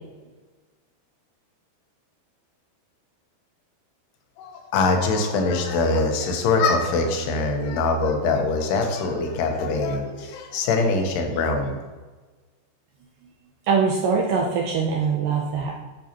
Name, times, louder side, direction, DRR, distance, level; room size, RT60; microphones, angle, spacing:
voice 1, 4.4-11.8, left 3 dB, 90° left, 3 dB, 3.0 m, -23 dB
voice 2, 13.7-15.8, right 5 dB, 80° right, -1 dB, 1.9 m, -22 dB
9.7 x 6.2 x 2.9 m, 1.3 s
omnidirectional pair, 4.6 m